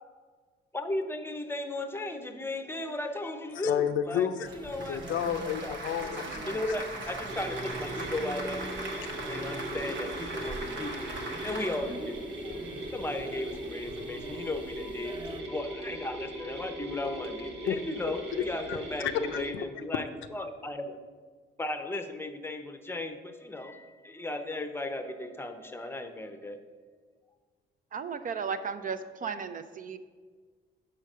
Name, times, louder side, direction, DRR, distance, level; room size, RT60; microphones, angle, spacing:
voice 1, 0.7-5.0 5.6-5.8 6.4-8.7 9.3-11.1 11.4-12.7 12.9-21.0 21.6-26.6, left 2 dB, 10° left, 8 dB, 0.7 m, -36 dB
voice 2, 3.6-4.5 4.9-6.7 17.7-18.8 19.0-19.4, left 9 dB, 80° left, 9 dB, 0.5 m, -31 dB
sound 1, 4.4-15.4, equal, 25° right, 1.0 m, -45 dB
Applause, 4.4-11.8, right 2 dB, 70° right, 1.1 m, -39 dB
sound 2, 7.3-19.5, right 1 dB, 90° right, 1.1 m, -39 dB
voice 3, 27.9-30.0, right 6 dB, 45° right, 10 dB, 0.5 m, -35 dB
5.7 x 4.8 x 6.5 m, 1.5 s
cardioid pair, 90°, 20 cm